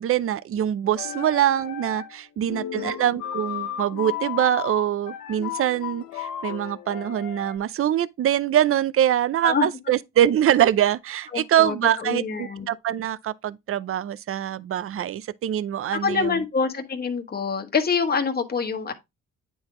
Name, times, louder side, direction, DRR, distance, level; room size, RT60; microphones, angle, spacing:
voice 1, 0.0-16.4, right 11 dB, 45° right, 0.5 m, -24 dB
sound 1, 0.9-2.2 2.5-7.6, left 10 dB, 90° left, 1.0 m, -34 dB
voice 2, 2.5-3.0 9.4-9.7 11.3-12.7 15.9-18.9, left 5 dB, 30° left, 1.3 m, -26 dB
8.9 x 3.9 x 3.7 m
cardioid pair, 90°, 30 cm